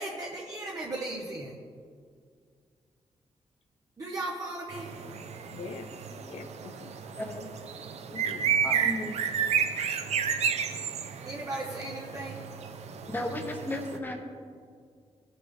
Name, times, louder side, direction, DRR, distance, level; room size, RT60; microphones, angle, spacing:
voice 1, 0.0-1.5 4.0-4.9 11.2-12.4, right 2 dB, 30° right, -2 dB, 0.9 m, -36 dB
sound 1, 4.7-14.0, right 7 dB, 90° right, 0.7 m, -32 dB
voice 2, 5.5-7.1 8.2-8.5, left 5 dB, 70° left, 6 dB, 0.5 m, -44 dB
voice 3, 7.2-7.5 8.1-8.2 8.6-9.2 13.1-14.2, left 1 dB, 20° left, 2 dB, 1.1 m, -34 dB
18.5 x 6.5 x 3.7 m, 2.1 s
wide cardioid pair, 170°, 11 cm